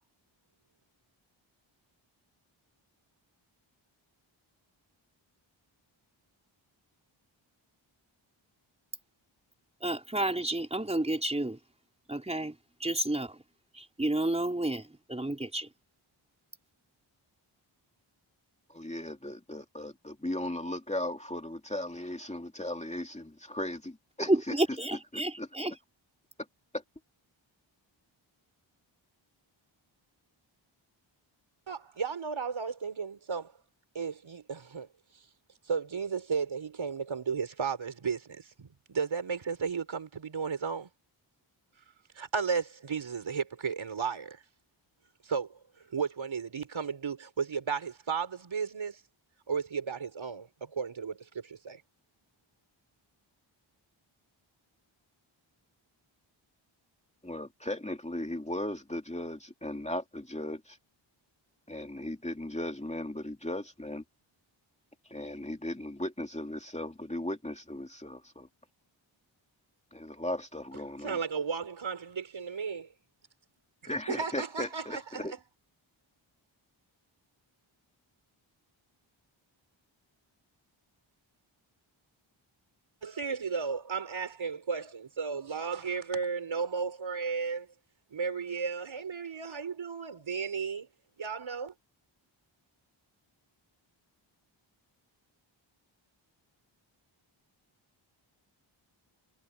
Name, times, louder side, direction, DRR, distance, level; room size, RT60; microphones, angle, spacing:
voice 1, 9.8-11.6 12.1-13.4 13.7-15.7 24.3-25.7, right 1 dB, 15° right, 3.9 m, -31 dB
voice 2, 18.7-24.3 25.1-25.5 26.7-26.8 57.2-60.8 61.7-64.0 65.1-68.5 69.9-71.2 73.9-75.3, left 1 dB, 15° left, 2.6 m, -37 dB
voice 3, 31.7-33.5 33.9-34.9 35.7-40.9 42.2-44.4 45.2-45.6 45.9-49.0 49.5-51.8 71.0-72.9 73.8-75.3 83.0-87.7 88.1-90.9 91.2-91.7, right 5 dB, 70° right, 4.3 m, -34 dB
wide cardioid pair, 75°, 48 cm